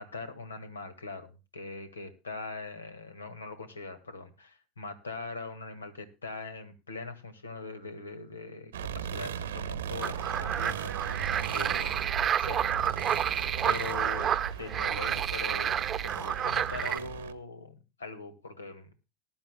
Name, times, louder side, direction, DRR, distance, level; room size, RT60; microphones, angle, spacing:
voice 1, 0.0-12.8 13.6-19.0, left 3 dB, 80° left, 11 dB, 1.7 m, -42 dB
sound 1, 8.7-17.3, right 8 dB, 70° right, 0.9 m, -37 dB
sound 2, 10.0-17.0, right 9 dB, 30° right, 0.8 m, -30 dB
19.5 x 11.0 x 2.2 m, 0.29 s
figure-of-eight pair, 80°, 0 cm